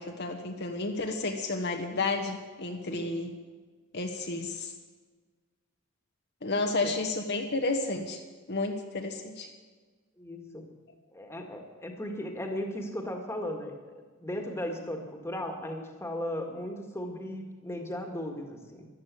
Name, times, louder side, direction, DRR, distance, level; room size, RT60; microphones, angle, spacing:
voice 1, 0.0-3.3 3.9-4.7 6.4-8.2 8.5-9.5, left 3 dB, 50° left, 3 dB, 1.3 m, -31 dB
voice 2, 2.9-3.2 6.5-6.9 10.2-10.7 11.1-18.9, left 1 dB, 10° left, 3 dB, 1.9 m, -37 dB
13.5 x 11.5 x 8.4 m, 1.4 s
head